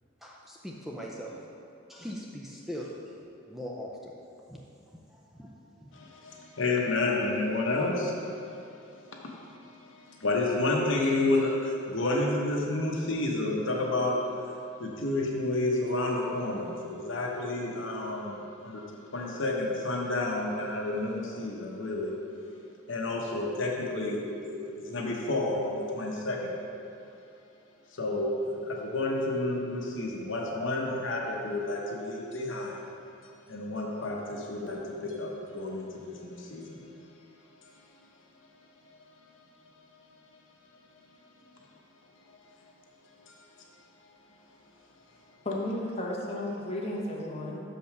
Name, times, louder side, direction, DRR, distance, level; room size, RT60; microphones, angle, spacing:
voice 1, 0.2-1.5 1.9-3.2 3.5-4.1 4.5-4.6 4.9-5.5 5.8-5.9, equal, ahead, -3 dB, 0.5 m, -41 dB
voice 2, 5.9-14.5 14.8-18.8 19.1-22.1 22.9-26.5 27.9-32.9 33.5-36.9 37.5-38.0 41.4-41.7 42.2-42.7 43.0-43.7 44.0-44.1, left 2 dB, 65° left, -1 dB, 1.1 m, -31 dB
voice 3, 45.4-47.6, left 1 dB, 30° left, -3 dB, 1.1 m, -33 dB
6.5 x 5.4 x 5.9 m, 2.6 s
head